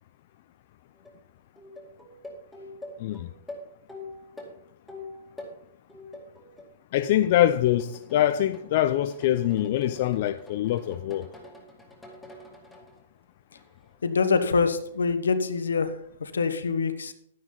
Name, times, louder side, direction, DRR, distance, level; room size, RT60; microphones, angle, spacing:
sound 1, 0.9-1.2 1.6-5.6 5.9-6.7 7.0-13.0 13.5-13.9 15.0-15.1, left 2 dB, ahead, 2.4 m, -45 dB
voice 1, 3.0-3.3 6.9-11.3, left 12 dB, 50° left, 0.6 m, -24 dB
voice 2, 14.0-15.9 16.3-17.1, left 5 dB, 85° left, 1.2 m, -24 dB
11.5 x 9.7 x 4.0 m
hypercardioid pair, 130°, 0 cm